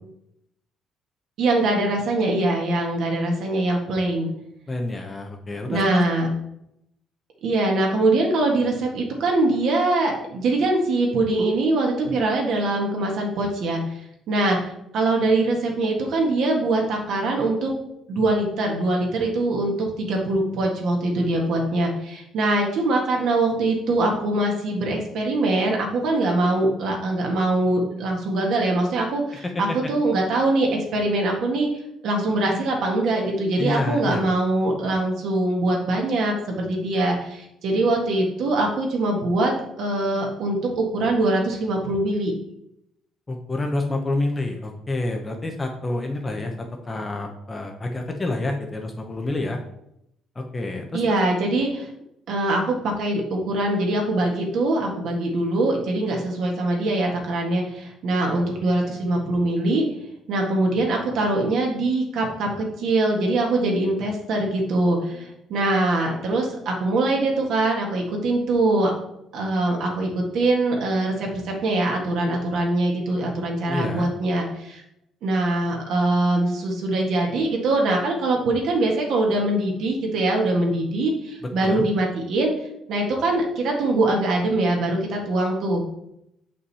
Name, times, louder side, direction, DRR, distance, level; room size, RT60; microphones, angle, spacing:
voice 1, 1.4-4.3 5.7-6.3 7.4-13.8 14.3-17.7 18.1-19.7 20.0-31.7 32.0-42.3 50.9-51.9 52.3-59.9 60.3-68.9 69.3-74.8 75.2-82.5 82.9-85.8, right 2 dB, 55° right, 0 dB, 1.7 m, -23 dB
voice 2, 4.7-6.0 29.4-29.8 33.6-34.2 43.3-49.6 50.4-51.2 73.7-74.1 81.4-81.9, left 2 dB, 15° left, 3 dB, 0.7 m, -28 dB
7.2 x 5.4 x 4.2 m, 0.79 s
cardioid pair, 170°, 0 cm